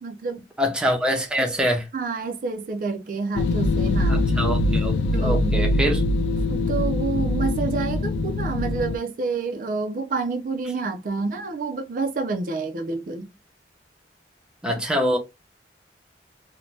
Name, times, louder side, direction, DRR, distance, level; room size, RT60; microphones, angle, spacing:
voice 1, 0.0-0.4 1.9-4.2 5.1-5.7 6.5-13.3, right 4 dB, 50° right, 0.4 m, -28 dB
voice 2, 0.6-1.9 4.1-6.0 14.6-15.2, equal, 5° right, 0.6 m, -24 dB
sound 1, 3.4-9.0, left 2 dB, 85° left, 0.3 m, -23 dB
2.6 x 2.1 x 3.0 m
head